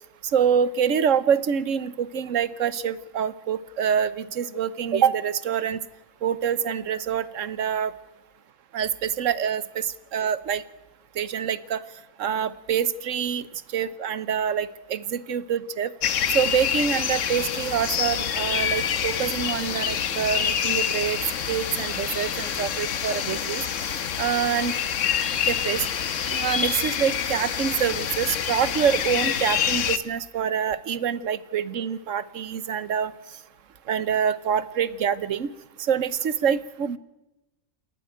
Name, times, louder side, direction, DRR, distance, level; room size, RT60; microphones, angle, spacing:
voice 1, 0.3-5.8 6.2-7.9 8.7-10.6 11.2-11.8 12.2-13.5 13.7-15.9 16.3-21.2 21.5-23.6 24.2-24.8 25.4-25.9 26.3-33.1 33.9-35.5 35.8-37.0, right 8 dB, 90° right, 16 dB, 1.3 m, -26 dB
sound 1, 16.0-30.0, left 8 dB, 80° left, 1.3 m, -27 dB
28.0 x 11.0 x 9.1 m, 0.98 s
omnidirectional pair, 1.3 m